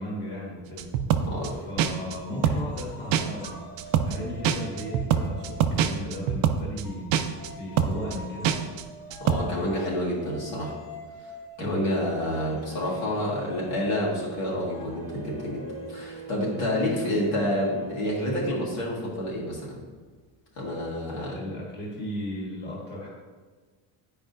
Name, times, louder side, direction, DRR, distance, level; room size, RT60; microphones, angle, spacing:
voice 1, 0.0-1.2 1.5-3.6 4.0-7.1 7.5-8.5 11.6-12.1 21.1-23.1, left 1 dB, 20° left, -5 dB, 1.6 m, -36 dB
sound 1, 0.8-1.5 1.8-2.2 2.4-2.8 3.1-3.5 3.8-4.2 4.4-6.8 7.1-7.5 7.8-8.2 8.4-8.8 9.1-9.4, right 9 dB, 90° right, 0.6 m, -24 dB
voice 2, 1.2-1.6 9.2-10.8 11.6-15.6 15.9-19.8 20.6-21.4, left 1 dB, 65° left, -4 dB, 1.8 m, -28 dB
sound 2, 1.9-6.3 6.8-18.2, equal, 40° left, 1.7 m, -45 dB
sound 3, 11.8-19.0 20.1-20.2, right 5 dB, 30° right, 1.0 m, -43 dB
9.3 x 4.9 x 2.6 m, 1.4 s
cardioid pair, 170°, 47 cm